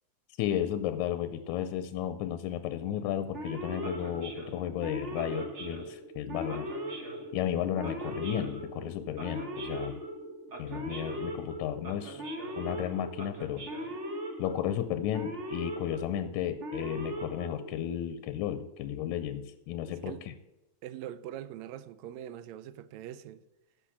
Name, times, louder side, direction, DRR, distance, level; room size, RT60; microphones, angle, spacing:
voice 1, 0.4-10.0 10.6-12.2 12.6-13.7 14.4-20.3, left 11 dB, 80° left, 1.9 m, -34 dB
Male speech man speaking / Siren, 3.3-18.1, equal, 60° right, 0.7 m, -39 dB
voice 2, 19.9-20.3 20.8-23.4, right 11 dB, 75° right, 1.7 m, -43 dB
10.0 x 6.3 x 8.5 m
omnidirectional pair, 3.6 m